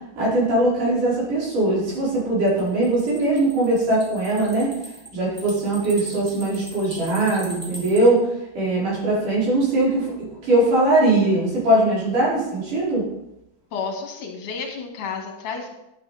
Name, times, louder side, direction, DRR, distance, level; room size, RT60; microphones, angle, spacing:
voice 1, 0.2-4.7 5.1-8.2 8.5-10.1 10.4-13.0, right 2 dB, 65° right, -8 dB, 6.5 m, -20 dB
sound 1, 2.5-8.0, right 1 dB, 10° right, 1.9 m, -40 dB
voice 2, 13.7-15.7, left 5 dB, 70° left, 2 dB, 3.2 m, -31 dB
11.0 x 8.9 x 4.2 m, 0.87 s
omnidirectional pair, 3.9 m